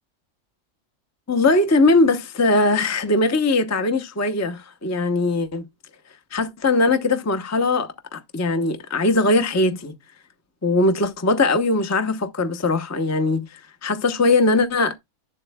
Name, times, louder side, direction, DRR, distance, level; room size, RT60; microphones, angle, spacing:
voice 1, 1.3-5.7 6.3-10.0 10.6-15.0, left 2 dB, 15° left, 0.7 m, -20 dB
10.5 x 7.7 x 2.2 m
omnidirectional pair, 1.5 m